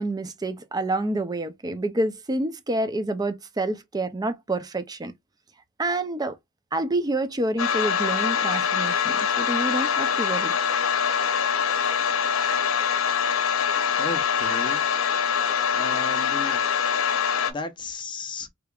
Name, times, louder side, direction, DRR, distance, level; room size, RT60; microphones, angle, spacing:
voice 1, 0.0-5.1 5.8-6.4 6.7-10.5, right 2 dB, 20° right, 0.5 m, -28 dB
sound 1, 7.6-17.5, left 7 dB, 85° left, 0.7 m, -24 dB
voice 2, 14.0-14.8 15.7-16.6 17.5-18.5, left 3 dB, 25° left, 0.7 m, -34 dB
3.4 x 3.4 x 2.3 m
head